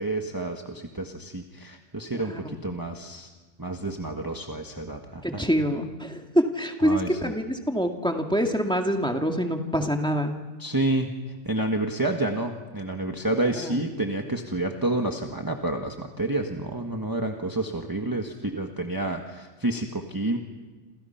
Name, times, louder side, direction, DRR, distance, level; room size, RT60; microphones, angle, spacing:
voice 1, 0.0-3.3 3.6-5.4 6.8-7.3 10.6-11.1 11.4-20.4, right 2 dB, 15° right, 2 dB, 1.5 m, -29 dB
voice 2, 5.2-10.3 13.6-13.7, equal, 5° left, 3 dB, 2.1 m, -25 dB
28.0 x 28.0 x 5.8 m, 1.3 s
omnidirectional pair, 1.3 m